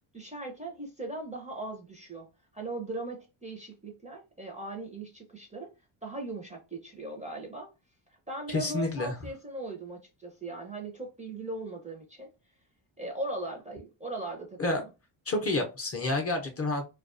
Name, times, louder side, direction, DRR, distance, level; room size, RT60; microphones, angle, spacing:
voice 1, 0.1-2.3 2.5-5.7 6.0-7.7 8.3-12.3 13.0-14.9, right 2 dB, 15° right, 0.5 m, -39 dB
voice 2, 8.5-9.1 14.6-14.8 15.3-16.9, left 2 dB, 30° left, 0.6 m, -29 dB
2.3 x 2.2 x 2.4 m
cardioid pair, 105°, 50 cm